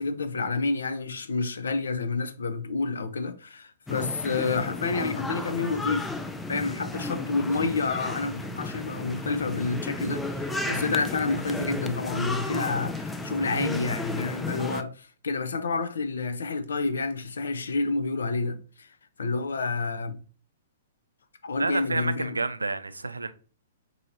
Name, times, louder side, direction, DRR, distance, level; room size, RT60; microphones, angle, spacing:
voice 1, 0.0-6.1 6.5-18.9 19.2-20.1 21.4-22.4, left 3 dB, 70° left, 0.5 m, -29 dB
sound 1, 3.9-14.8, left 2 dB, 5° left, 0.3 m, -33 dB
voice 2, 21.6-23.3, right 3 dB, 85° right, 0.4 m, -29 dB
2.8 x 2.7 x 4.0 m
figure-of-eight pair, 115°, 0 cm